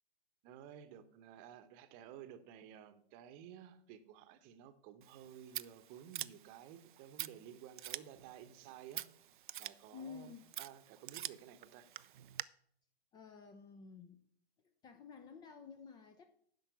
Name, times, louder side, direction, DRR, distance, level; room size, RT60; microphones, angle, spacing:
voice 1, 0.4-9.1 9.6-11.9, right 9 dB, 30° right, 12 dB, 0.9 m, -54 dB
Scissors, 5.0-12.4, right 12 dB, 50° right, 0.4 m, -47 dB
voice 2, 9.9-10.5 13.1-14.2 14.8-16.3, left 5 dB, 15° left, 8 dB, 0.5 m, -52 dB
10.0 x 6.1 x 6.9 m, 0.66 s
figure-of-eight pair, 115°, 32 cm